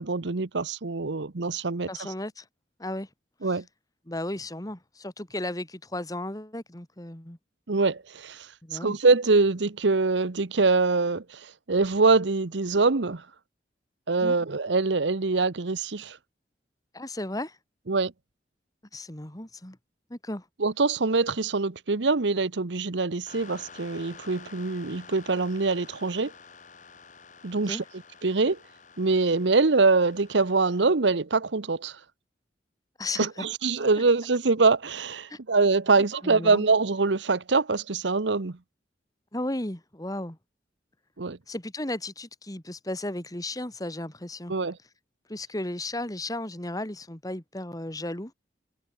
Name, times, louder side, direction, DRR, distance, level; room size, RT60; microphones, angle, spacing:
voice 1, 0.0-2.1 3.4-3.6 7.7-13.2 14.1-16.2 17.9-18.1 20.6-26.3 27.4-27.8 28.2-28.6 29.0-32.0 33.2-38.6 41.2-41.4 44.5-44.8, right 3 dB, 80° right, 1.0 m, -24 dB
voice 2, 1.9-2.4 2.8-3.1 4.1-7.4 8.6-9.0 14.2-14.3 16.9-17.6 18.9-19.8 20.1-20.4 27.7-27.8 33.0-33.5 35.3-35.4 36.2-36.7 39.3-40.4 41.5-44.5 45.3-48.3, left 1 dB, 20° left, 2.2 m, -34 dB
sound 1, 23.3-30.8, left 5 dB, 45° left, 7.7 m, -50 dB
head